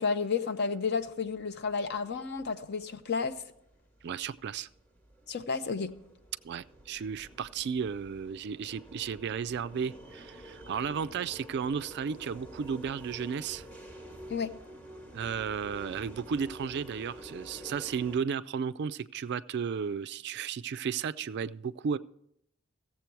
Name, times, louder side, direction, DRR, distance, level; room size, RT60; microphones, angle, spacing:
voice 1, 0.0-3.4 5.3-5.9 14.3-14.5, left 5 dB, 50° left, 0.6 m, -31 dB
sound 1, 0.9-18.2, right 1 dB, 10° left, 1.1 m, -49 dB
voice 2, 4.0-4.7 6.4-13.6 15.1-22.0, right 6 dB, 50° right, 0.3 m, -34 dB
16.0 x 7.5 x 4.6 m
head